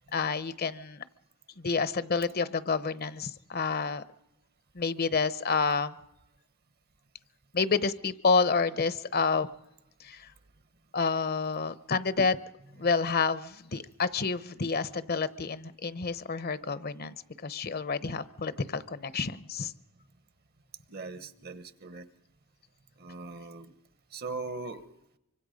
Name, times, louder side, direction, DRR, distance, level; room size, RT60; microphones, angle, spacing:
voice 1, 0.1-1.0 1.6-4.0 4.7-5.9 7.5-9.5 10.0-10.3 10.9-12.4 12.8-19.7, left 4 dB, 45° left, 15 dB, 0.8 m, -29 dB
voice 2, 20.9-22.1 23.0-23.7 24.1-24.9, right 3 dB, 45° right, 13 dB, 1.2 m, -40 dB
25.0 x 24.5 x 5.2 m, 0.83 s
head